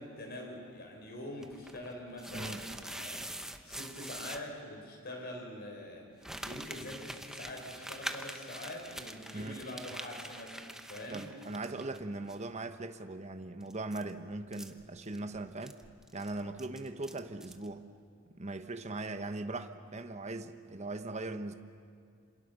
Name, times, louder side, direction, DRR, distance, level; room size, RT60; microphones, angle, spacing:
voice 1, 0.0-3.3 3.7-11.3, left 1 dB, 50° left, 2 dB, 4.6 m, -44 dB
sound 1, 1.4-4.4 6.2-12.0 12.3-12.4 13.6-17.7, right 1 dB, ahead, 0.9 m, -44 dB
voice 2, 2.3-2.6 9.3-9.6 11.1-15.8 16.1-17.9 18.3-21.5, right 2 dB, 35° right, 8 dB, 1.0 m, -40 dB
27.0 x 27.0 x 6.7 m, 2.2 s
head